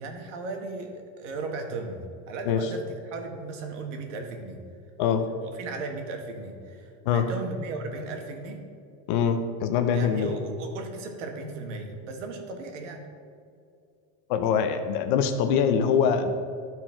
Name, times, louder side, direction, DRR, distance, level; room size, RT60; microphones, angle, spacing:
voice 1, 0.0-4.6 5.4-8.6 9.9-13.1, right 3 dB, 75° right, 4 dB, 1.5 m, -36 dB
voice 2, 9.1-10.4 14.3-16.3, left 7 dB, 40° left, 7 dB, 0.5 m, -23 dB
12.0 x 4.5 x 4.3 m, 2.4 s
supercardioid pair, 180°, 37 cm